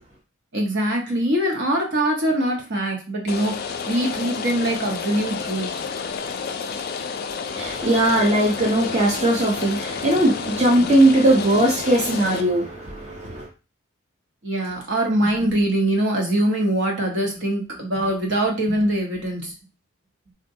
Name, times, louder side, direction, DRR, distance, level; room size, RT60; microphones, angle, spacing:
voice 1, 0.5-5.7 14.4-19.6, right 1 dB, 55° right, 0.9 m, -23 dB
Rain, 3.3-12.4, left 5 dB, 45° left, 0.3 m, -30 dB
voice 2, 7.5-13.5, right 1 dB, 35° right, 0.7 m, -19 dB
3.6 x 2.1 x 2.6 m
head